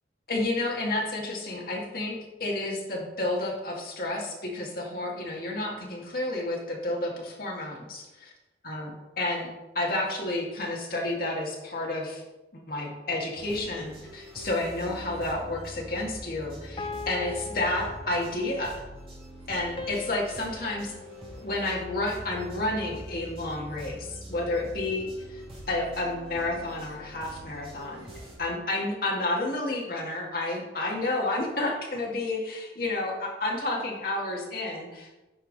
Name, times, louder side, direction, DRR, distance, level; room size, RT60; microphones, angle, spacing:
voice 1, 0.3-8.3 8.6-9.5 9.8-12.2 12.5-18.8 19.5-20.9 21.4-25.1 25.7-28.1 28.4-35.2, left 2 dB, 50° left, -1 dB, 1.8 m, -30 dB
sound 1, 13.4-28.4, right 1 dB, 30° right, 2.5 m, -44 dB
sound 2, 14.8-15.5 16.8-18.6 19.8-22.2, left 5 dB, 30° left, 0.5 m, -41 dB
8.9 x 5.6 x 4.0 m, 1.1 s
head